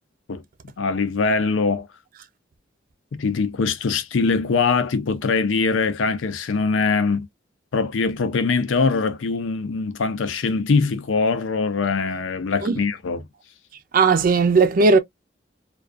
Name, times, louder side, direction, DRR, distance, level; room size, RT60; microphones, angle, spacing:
voice 1, 0.8-1.9 3.1-7.3 7.7-13.2, left 4 dB, 85° left, 0.5 m, -22 dB
voice 2, 13.9-15.0, right 4 dB, 45° right, 0.4 m, -16 dB
2.3 x 2.3 x 2.3 m
head